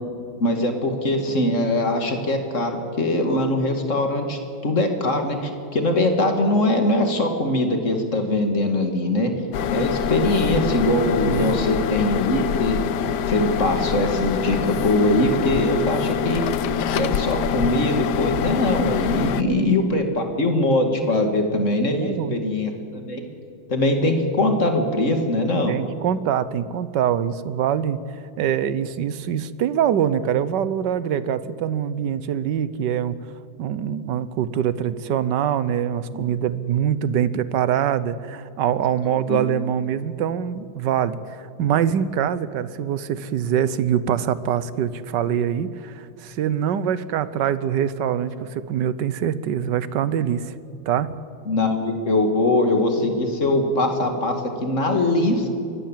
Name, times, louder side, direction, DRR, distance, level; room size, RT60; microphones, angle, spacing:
voice 1, 0.4-9.3 9.7-12.8 13.3-16.4 16.9-23.3 23.7-25.7 36.1-36.2 39.0-39.4 51.5-55.5, left 1 dB, 40° left, 4 dB, 2.6 m, -22 dB
sound 1, 9.5-19.4, left 8 dB, 65° left, 1.2 m, -25 dB
voice 2, 11.2-11.6 19.4-19.7 21.9-22.4 25.7-33.2 33.6-50.6 50.9-51.1, right 9 dB, 65° right, 15 dB, 1.4 m, -24 dB
24.0 x 19.0 x 7.4 m, 2.5 s
omnidirectional pair, 2.2 m